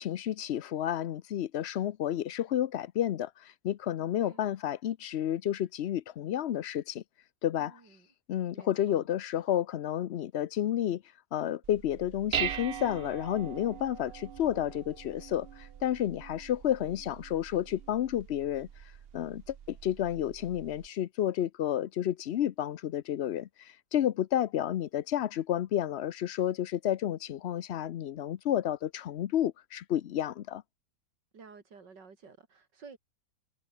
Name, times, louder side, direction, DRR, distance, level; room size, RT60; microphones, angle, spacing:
voice 1, 0.0-7.0 7.4-7.8 8.3-11.0 11.3-18.7 19.1-30.6, left 11 dB, 75° left, 0.5 m, -31 dB
voice 2, 7.5-8.1 8.5-9.0 31.3-33.0, right 5 dB, 85° right, 3.4 m, -52 dB
Dishes pots and pans, 11.6-20.9, right 9 dB, 55° right, 0.6 m, -41 dB
omnidirectional pair, 1.8 m